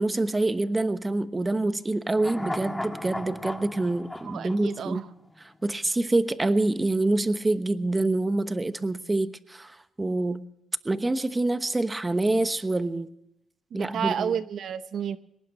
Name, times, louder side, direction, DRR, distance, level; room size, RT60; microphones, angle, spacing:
voice 1, 0.0-5.0 5.6-10.5 10.8-13.1 13.7-14.3, right 2 dB, 20° right, 1.1 m, -26 dB
sound 1, 2.1-5.5 5.8-5.9, left 1 dB, 10° left, 1.6 m, -36 dB
voice 2, 4.2-5.1 13.7-15.2, right 8 dB, 65° right, 0.7 m, -31 dB
22.0 x 19.0 x 2.9 m
cardioid pair, 90°, 0 cm